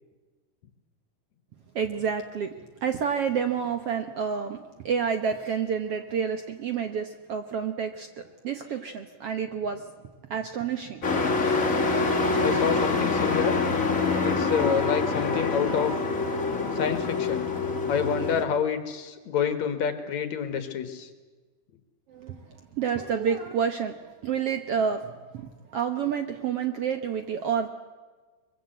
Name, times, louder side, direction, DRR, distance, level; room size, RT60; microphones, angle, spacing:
voice 1, 1.7-2.5 2.8-4.6 4.8-9.9 10.3-11.0 11.4-11.5 22.1-24.0 24.2-27.7, right 7 dB, 60° right, 7 dB, 1.6 m, -29 dB
Truck, 11.0-18.4, left 4 dB, 25° left, 2.6 m, -25 dB
voice 2, 12.4-13.6 14.2-15.9 16.8-17.5 17.9-21.1, left 7 dB, 60° left, 9 dB, 2.7 m, -28 dB
23.5 x 23.0 x 7.9 m, 1.4 s
omnidirectional pair, 3.8 m